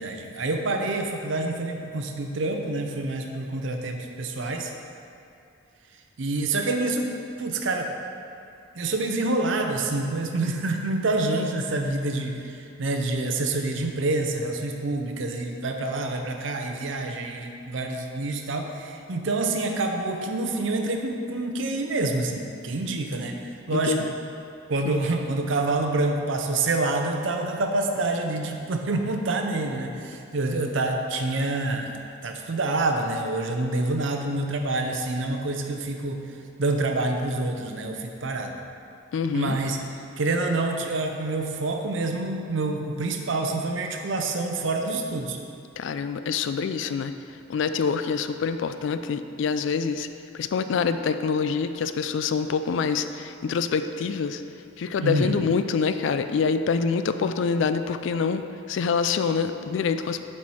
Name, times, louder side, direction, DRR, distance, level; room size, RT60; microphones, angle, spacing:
voice 1, 0.0-4.7 6.2-7.1 7.4-7.9 8.7-24.1 24.7-36.2 36.6-38.6 39.3-39.8 40.2-45.4 55.0-55.4, right 2 dB, 65° right, 4 dB, 0.6 m, -27 dB
voice 2, 23.7-24.0 39.1-39.6 45.8-47.1 47.5-50.1 50.3-54.4 54.8-60.2, left 5 dB, 60° left, 10 dB, 0.3 m, -26 dB
7.2 x 4.4 x 4.7 m, 2.6 s
head